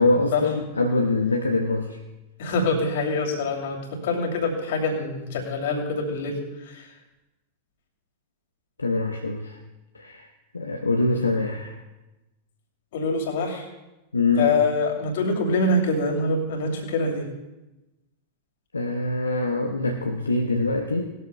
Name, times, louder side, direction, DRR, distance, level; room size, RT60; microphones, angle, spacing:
voice 1, 0.0-2.0 8.8-9.6 9.9-10.2 10.5-11.7 14.1-14.6 18.7-21.1, left 2 dB, 80° left, 3 dB, 0.8 m, -24 dB
voice 2, 2.4-6.9 12.9-13.7 14.3-17.3, left 2 dB, 55° left, 1 dB, 2.6 m, -25 dB
19.0 x 13.5 x 2.2 m, 1.0 s
figure-of-eight pair, 90°, 0 cm